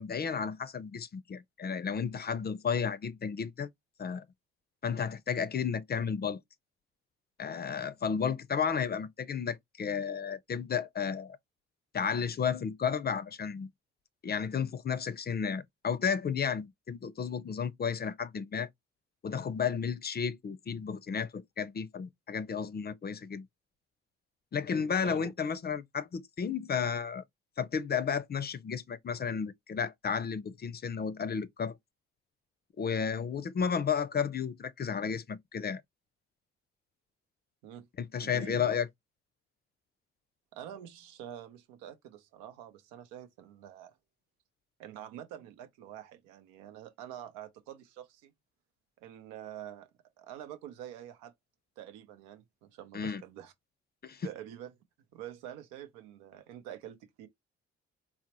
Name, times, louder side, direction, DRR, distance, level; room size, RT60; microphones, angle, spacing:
voice 1, 0.0-3.7 4.0-4.2 4.8-6.4 7.4-11.4 11.9-13.7 14.2-18.7 19.2-23.5 24.5-27.2 27.6-31.8 32.8-35.8 38.0-38.9 52.9-53.2 54.0-54.3, left 6 dB, 30° left, 0.5 m, -33 dB
voice 2, 38.2-38.6 40.5-44.0 44.8-48.3 49.0-49.9 50.2-51.3 51.8-53.5 54.2-54.7 55.1-57.3, right 11 dB, 85° right, 0.7 m, -46 dB
4.1 x 2.0 x 2.9 m
hypercardioid pair, 50°, 30 cm